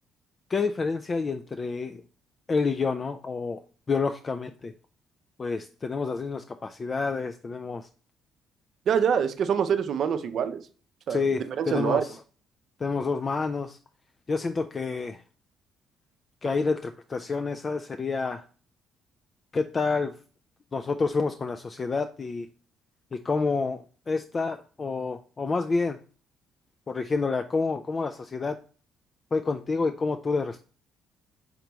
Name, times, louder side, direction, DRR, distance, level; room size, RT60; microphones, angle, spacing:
voice 1, 0.5-2.0 2.5-3.6 3.9-4.7 5.4-7.9 11.1-12.2 12.8-13.8 14.3-15.2 16.4-18.4 19.5-20.1 20.7-22.5 23.1-26.0 26.9-28.6 29.3-30.6, left 4 dB, 35° left, 7 dB, 0.3 m, -28 dB
voice 2, 8.9-10.6 11.1-12.0, right 7 dB, 60° right, 10 dB, 0.5 m, -25 dB
5.0 x 3.4 x 3.0 m, 0.39 s
supercardioid pair, 75°, 0 cm